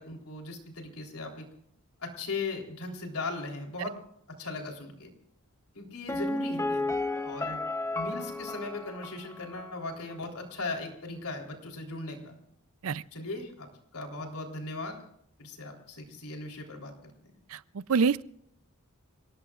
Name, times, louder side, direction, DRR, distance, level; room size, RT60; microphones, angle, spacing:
voice 1, 0.0-1.5 2.0-4.0 4.4-5.1 5.7-6.9 7.2-7.6 7.9-12.4 13.1-13.7 13.9-15.0 15.4-16.9, left 3 dB, 85° left, 2 dB, 3.6 m, -38 dB
Piano, 6.1-9.8 10.1-10.2, left 2 dB, 10° left, 0.9 m, -33 dB
voice 2, 17.5-18.2, right 5 dB, 70° right, 18 dB, 0.5 m, -27 dB
29.0 x 18.5 x 2.4 m, 0.73 s
head